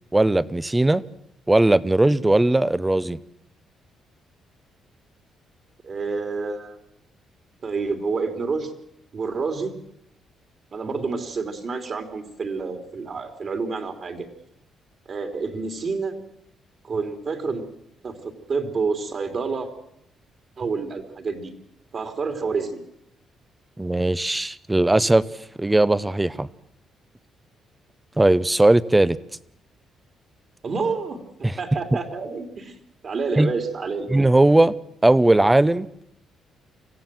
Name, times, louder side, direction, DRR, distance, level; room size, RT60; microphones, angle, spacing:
voice 1, 0.1-1.0 1.5-3.2 23.8-25.2 25.6-26.5 28.2-29.2 31.4-31.5 33.4-33.5 34.1-34.7 35.0-35.9, right 2 dB, 15° right, 17 dB, 0.8 m, -18 dB
voice 2, 5.8-6.8 7.6-8.7 9.1-9.7 10.7-14.3 15.1-16.1 16.8-17.6 18.0-18.1 18.5-19.7 20.6-21.5 21.9-22.8 30.6-31.2 31.6-34.1, right 4 dB, 50° right, 5 dB, 3.3 m, -28 dB
25.5 x 15.5 x 7.7 m, 0.76 s
cardioid pair, 90°, 0 cm